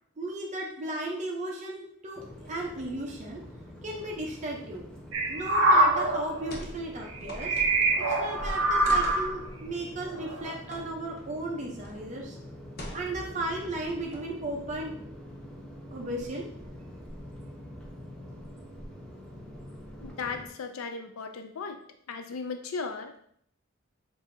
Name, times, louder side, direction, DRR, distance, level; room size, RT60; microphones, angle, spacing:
voice 1, 0.2-3.4 3.8-4.8 5.3-7.6 8.1-12.4 12.9-15.0 15.9-16.5, right 1 dB, 35° right, -1 dB, 0.7 m, -35 dB
sound 1, 2.1-20.5, equal, 5° left, 0.6 m, -44 dB
sound 2, 5.1-6.6 7.2-9.3 10.2-10.5, right 2 dB, 70° right, 0.9 m, -24 dB
sound 3, 6.4-6.8 7.0-8.1 8.8-9.3 10.7-10.8 11.2-11.3 11.8-12.1 12.8-13.3 13.9-14.4, left 1 dB, 45° left, 0.8 m, -43 dB
voice 2, 20.0-21.8 22.1-23.2, left 4 dB, 85° left, 7 dB, 0.4 m, -36 dB
6.9 x 2.7 x 2.7 m, 0.65 s
head